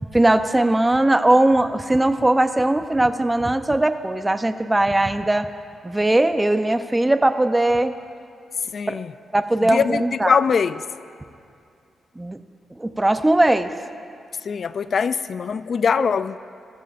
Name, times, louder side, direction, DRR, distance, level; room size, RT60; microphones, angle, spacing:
voice 1, 0.1-5.5 5.8-7.9 8.9-9.0 9.3-10.4 12.2-12.4 12.8-13.7 16.0-16.1, right 1 dB, 15° right, 10 dB, 0.6 m, -19 dB
voice 2, 8.7-9.1 9.6-10.8 14.4-16.4, left 6 dB, 60° left, 15 dB, 0.3 m, -22 dB
21.5 x 14.0 x 2.5 m, 2.4 s
cardioid pair, 65°, 0 cm